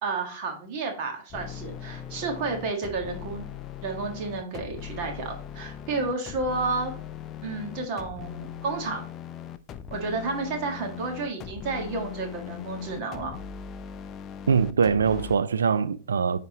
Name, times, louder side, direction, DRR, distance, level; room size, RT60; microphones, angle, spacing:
voice 1, 0.0-3.4 3.8-6.9 7.4-9.0 9.9-13.3, right 3 dB, 50° right, 1.6 m, -31 dB
sound 1, 1.3-15.4, left 9 dB, 30° left, 0.4 m, -39 dB
voice 2, 14.5-16.4, right 6 dB, 75° right, 0.4 m, -23 dB
9.1 x 3.7 x 2.9 m
figure-of-eight pair, 105°, 0 cm